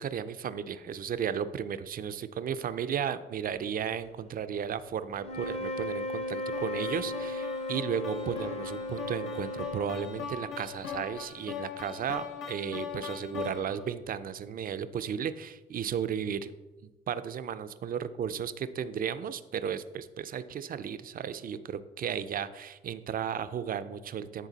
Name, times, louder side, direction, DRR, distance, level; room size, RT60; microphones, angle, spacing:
voice 1, 0.0-16.5 17.1-24.5, right 8 dB, 45° right, 12 dB, 0.4 m, -34 dB
sound 1, 5.2-10.6, left 2 dB, 30° left, 0.8 m, -36 dB
sound 2, 6.5-13.9, left 7 dB, 75° left, 1.0 m, -40 dB
10.0 x 3.7 x 4.0 m, 1.2 s
cardioid pair, 90°, 20 cm